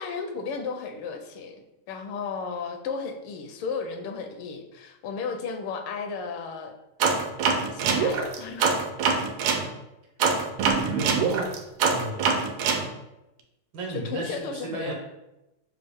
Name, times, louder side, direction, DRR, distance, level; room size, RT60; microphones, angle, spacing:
voice 1, 0.0-1.6 1.9-6.7 7.5-8.8 11.0-11.1 13.9-14.9, left 5 dB, 80° left, 5 dB, 1.4 m, -34 dB
sound 1, 7.0-9.6 10.2-12.8, right 5 dB, 80° right, 1.5 m, -24 dB
voice 2, 10.9-11.5 11.9-12.5 13.7-14.9, right 2 dB, 65° right, -1 dB, 1.5 m, -34 dB
6.6 x 2.3 x 3.4 m, 0.96 s
omnidirectional pair, 2.3 m